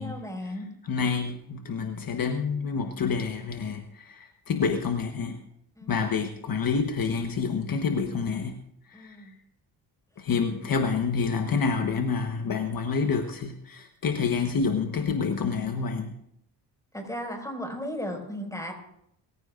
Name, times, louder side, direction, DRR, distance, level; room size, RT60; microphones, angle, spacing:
voice 1, 0.0-0.7 5.8-6.1 8.9-9.3 16.9-18.7, equal, 10° left, 2 dB, 5.6 m, -35 dB
voice 2, 0.8-5.4 5.9-8.6 8.9-9.3 10.2-16.1, left 5 dB, 55° left, 5 dB, 1.3 m, -28 dB
29.5 x 15.0 x 2.6 m, 0.75 s
cardioid pair, 75°, 42 cm